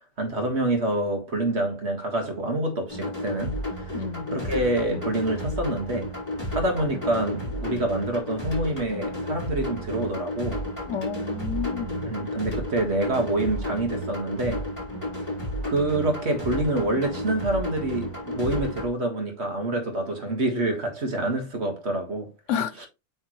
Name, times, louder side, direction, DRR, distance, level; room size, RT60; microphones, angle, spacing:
voice 1, 0.2-4.0 4.3-6.1 6.5-10.6 12.1-14.7 15.6-22.3 22.8-22.9, right 1 dB, 65° right, 2.1 m, -27 dB
sound 1, 2.9-18.9, equal, 25° left, 3.8 m, -32 dB
voice 2, 3.9-4.3 10.9-12.1 22.5-22.9, left 7 dB, 85° left, 1.2 m, -30 dB
8.2 x 4.3 x 3.1 m
omnidirectional pair, 1.2 m